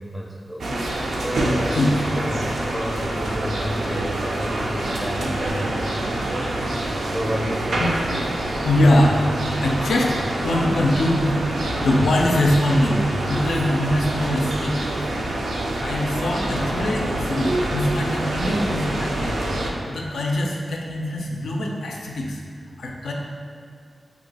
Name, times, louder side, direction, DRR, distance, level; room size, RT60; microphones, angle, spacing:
voice 1, 0.0-6.5 7.1-7.9, equal, 5° right, -3 dB, 0.4 m, -32 dB
sound 1, 0.6-19.7, right 1 dB, 80° right, 0.3 m, -26 dB
voice 2, 8.6-11.4 11.8-14.8 15.8-19.6 19.9-22.4 22.8-23.1, left 1 dB, 85° left, -1 dB, 0.3 m, -22 dB
2.8 x 2.2 x 3.9 m, 2.2 s
cardioid pair, 50°, 0 cm